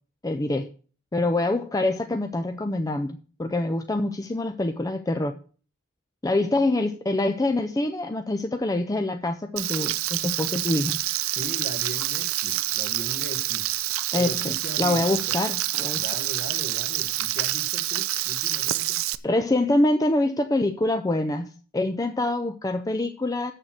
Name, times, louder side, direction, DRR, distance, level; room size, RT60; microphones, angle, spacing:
voice 1, 0.2-0.7 1.1-5.4 6.2-11.0 14.1-16.0 19.2-23.5, left 2 dB, 15° left, 0.4 m, -25 dB
Frying (food), 9.6-19.1, right 15 dB, 75° right, 0.5 m, -27 dB
voice 2, 11.3-13.7 14.1-15.4 15.9-19.0, left 1 dB, 45° left, 1.4 m, -38 dB
7.5 x 6.6 x 7.3 m
head